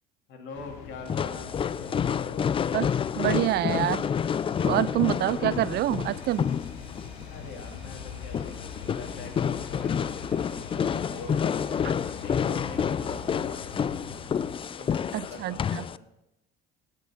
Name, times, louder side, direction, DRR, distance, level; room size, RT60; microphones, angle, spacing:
voice 1, 0.3-2.5 7.3-11.8 12.2-14.0 14.6-16.0, left 3 dB, 65° left, 2 dB, 2.9 m, -44 dB
sound 1, 0.5-14.6, left 9 dB, 85° left, 0.9 m, -43 dB
sound 2, 1.1-16.0, left 7 dB, 25° left, 0.3 m, -29 dB
sound 3, 3.2-15.6, right 2 dB, 25° right, 4.1 m, -50 dB
voice 2, 3.2-4.1 4.6-6.5 15.1-15.8, right 15 dB, 55° right, 20 dB, 0.4 m, -26 dB
17.5 x 6.5 x 5.2 m, 0.89 s
supercardioid pair, 80°, 20 cm